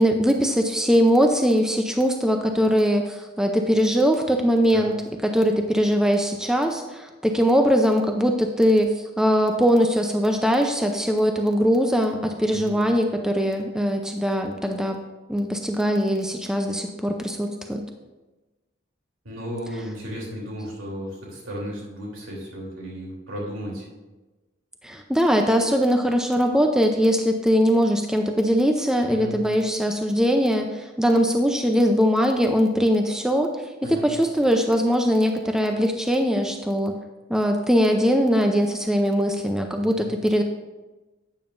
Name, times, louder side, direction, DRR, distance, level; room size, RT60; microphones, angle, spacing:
voice 1, 0.0-4.9 5.2-15.0 15.3-17.8 24.8-33.5 33.9-36.9 37.3-40.4, equal, 5° right, 4 dB, 0.5 m, -21 dB
voice 2, 19.2-23.9 29.1-29.3 33.8-34.1 39.8-40.0, equal, 85° right, -3 dB, 3.2 m, -34 dB
12.5 x 8.8 x 2.6 m, 1.1 s
head